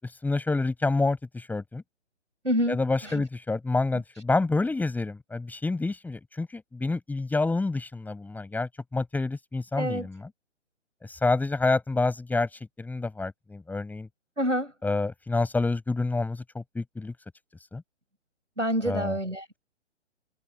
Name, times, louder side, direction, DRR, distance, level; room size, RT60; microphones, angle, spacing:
voice 1, 0.0-1.8 2.7-10.3 11.0-14.1 14.8-17.1 17.7-17.8 18.8-19.2, left 3 dB, 5° left, 6.9 m, -28 dB
voice 2, 2.4-2.8 3.0-3.2 9.8-10.1 14.4-14.7 18.6-19.6, equal, 90° right, 5.8 m, -27 dB
figure-of-eight pair, 125°, 36 cm